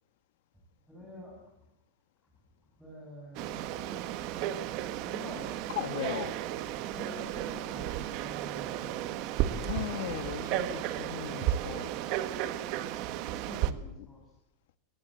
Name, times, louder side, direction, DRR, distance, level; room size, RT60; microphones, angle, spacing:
voice 1, 0.9-1.5 2.8-4.5 5.0-5.5 6.9-8.9 13.1-14.2, left 1 dB, ahead, -3 dB, 7.4 m, -47 dB
Frog, 3.3-13.7, right 12 dB, 45° right, 1.6 m, -34 dB
voice 2, 5.7-6.3 9.5-11.9, left 13 dB, 70° left, 12 dB, 1.9 m, -37 dB
23.5 x 20.0 x 7.7 m, 0.86 s
supercardioid pair, 165°, 0 cm